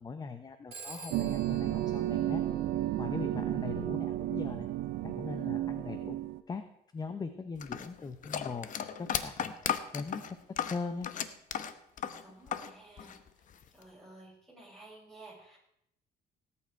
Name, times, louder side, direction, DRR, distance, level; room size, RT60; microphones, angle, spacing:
voice 1, 0.0-2.4 3.0-4.7 5.0-6.2 6.5-6.6 6.9-8.7 9.0-9.5 9.9-10.2 10.6-11.1, left 4 dB, 25° left, 10 dB, 0.9 m, -40 dB
Telephone, 0.7-3.2, right 3 dB, 35° right, 3.1 m, -49 dB
sound 1, 1.1-6.4, right 13 dB, 85° right, 0.8 m, -32 dB
sound 2, 7.6-12.7 13.0-13.8, left 8 dB, 50° left, 1.0 m, -35 dB
voice 2, 12.2-15.6, right 2 dB, ahead, -3 dB, 6.0 m, -54 dB
18.0 x 8.7 x 4.6 m, 0.75 s
cardioid pair, 110°, 17 cm